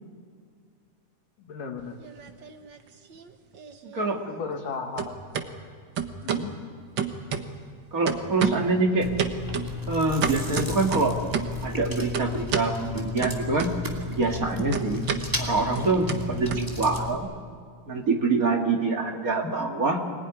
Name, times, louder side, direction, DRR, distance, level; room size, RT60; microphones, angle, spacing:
voice 1, 1.4-2.0 4.3-5.2 6.2-6.6 16.4-16.6, left 5 dB, 85° left, 4 dB, 3.6 m, -35 dB
sound 1, 1.8-2.8 3.1-4.7 5.0-5.5 6.0-6.5 7.0-7.8 8.1-8.7 9.2-11.6 12.1-12.7 13.2-14.1 14.3-17.2, right 7 dB, 50° right, 1.4 m, -31 dB
voice 2, 7.9-9.1 9.9-11.1 11.6-13.7 14.1-15.0 15.4-17.3 17.9-20.0, right 3 dB, 30° right, 2 dB, 2.0 m, -25 dB
Chewing mastication, 9.0-17.2, left 3 dB, 5° right, 2.2 m, -34 dB
25.5 x 20.0 x 10.0 m, 2.1 s
omnidirectional pair, 3.6 m